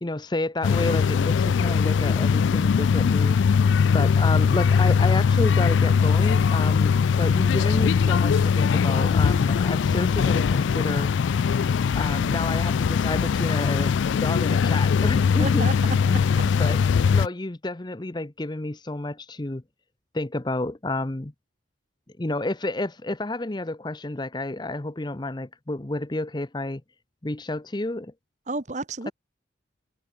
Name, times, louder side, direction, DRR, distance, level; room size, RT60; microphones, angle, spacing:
voice 1, 0.0-3.6 3.9-11.1 11.9-15.7 16.1-16.8 17.1-19.6 20.1-21.3 22.2-26.8 27.2-28.1, left 2 dB, 25° left, 0.7 m, -30 dB
sound 1, 0.6-17.3, left 6 dB, 75° left, 0.3 m, -21 dB
voice 2, 15.4-16.4 28.5-29.1, right 3 dB, 40° right, 1.3 m, -32 dB
head